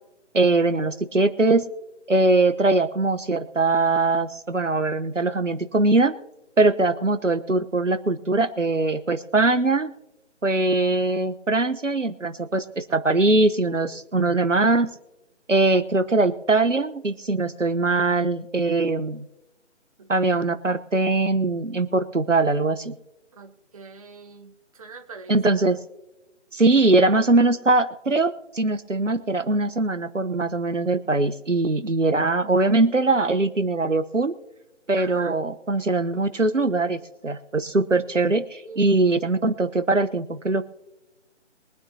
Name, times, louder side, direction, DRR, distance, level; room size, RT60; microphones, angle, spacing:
voice 1, 0.3-1.7 2.1-6.1 6.6-9.9 10.4-14.9 15.5-19.2 20.1-22.9 25.3-25.8 26.5-34.4 34.9-40.6, right 2 dB, 90° right, 11 dB, 1.0 m, -21 dB
voice 2, 23.3-25.4 34.9-35.4 38.6-38.9, right 4 dB, 30° right, 5 dB, 1.1 m, -42 dB
23.0 x 9.5 x 2.8 m, 0.98 s
figure-of-eight pair, 145°, 36 cm